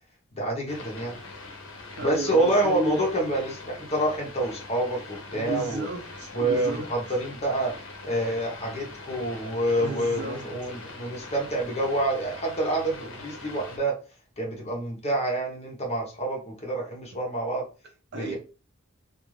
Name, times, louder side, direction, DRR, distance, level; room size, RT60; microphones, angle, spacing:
voice 1, 0.3-1.2 2.0-5.9 6.3-7.8 8.0-14.0 14.4-17.6 18.1-18.4, right 1 dB, 30° left, 0.8 m, -27 dB
sound 1, 0.7-13.8, left 3 dB, 60° left, 0.7 m, -43 dB
voice 2, 2.0-3.0 5.3-6.9 9.8-10.4 18.1-18.4, right 1 dB, 50° right, 0.6 m, -33 dB
2.5 x 2.4 x 3.1 m
head